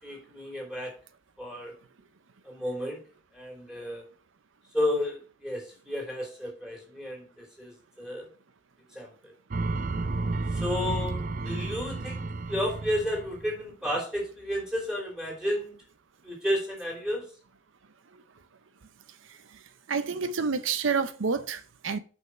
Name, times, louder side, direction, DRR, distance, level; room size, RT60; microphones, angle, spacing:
voice 1, 0.0-0.9 1.4-1.7 2.4-3.0 3.3-4.0 4.7-8.3 8.9-9.3 10.5-15.7 16.2-17.2, left 1 dB, 5° right, 3.2 m, -32 dB
sound 1, 9.5-13.6, right 3 dB, 45° right, 0.4 m, -32 dB
voice 2, 19.9-22.0, right 5 dB, 85° right, 0.6 m, -28 dB
6.2 x 5.5 x 5.9 m
head